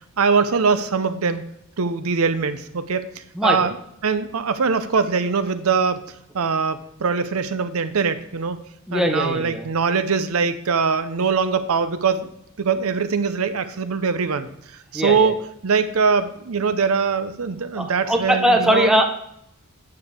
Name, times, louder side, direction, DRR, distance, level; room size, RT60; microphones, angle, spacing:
voice 1, 0.2-1.4 1.8-3.0 3.4-3.8 4.0-6.0 6.3-8.6 8.9-12.3 12.6-14.5 14.9-15.4 15.6-18.9, right 5 dB, 75° right, 12 dB, 0.6 m, -22 dB
voice 2, 8.9-9.7 14.9-15.3 17.8-19.0, equal, 5° right, 3 dB, 0.9 m, -20 dB
9.6 x 6.8 x 3.4 m, 0.75 s
head